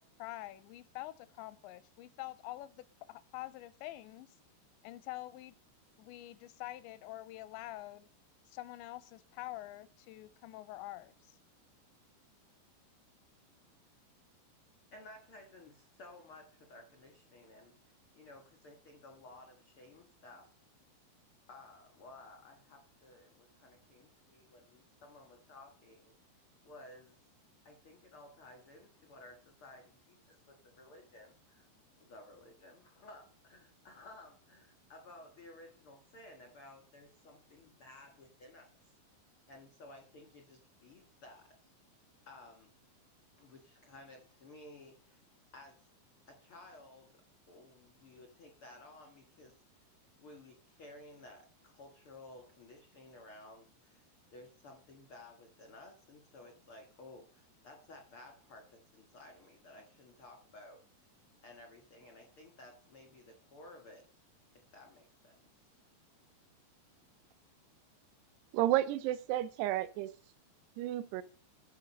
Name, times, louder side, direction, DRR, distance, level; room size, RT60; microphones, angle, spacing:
voice 1, 0.0-4.4 4.8-5.6 6.0-8.1 8.5-11.4, left 16 dB, 85° left, 2.9 m, -46 dB
voice 2, 14.9-20.5 21.5-26.1 26.6-27.2 27.6-31.7 32.0-38.7 39.5-41.5 42.3-42.7 43.4-45.3 45.5-45.9 46.3-47.2 47.5-49.9 50.1-60.8 61.4-64.1 64.5-65.4, left 2 dB, 70° left, 1.2 m, -55 dB
voice 3, 68.5-70.1 70.8-71.2, right 14 dB, 80° right, 2.6 m, -31 dB
13.0 x 4.9 x 5.3 m
omnidirectional pair, 5.1 m